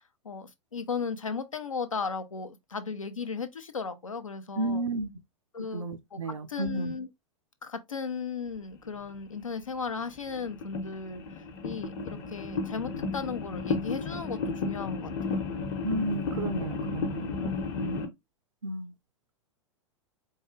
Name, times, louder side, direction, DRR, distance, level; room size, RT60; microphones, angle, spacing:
voice 1, 0.2-4.8 5.5-5.9 6.1-7.1 7.6-15.5 17.7-18.1, left 5 dB, 85° left, 0.7 m, -36 dB
voice 2, 4.6-5.1 5.6-6.9 15.8-17.3 18.6-18.9, right 2 dB, 80° right, 0.5 m, -32 dB
sound 1, 9.3-9.5 10.3-18.1, left 4 dB, 45° left, 0.9 m, -33 dB
4.5 x 2.2 x 3.1 m
figure-of-eight pair, 95°, 17 cm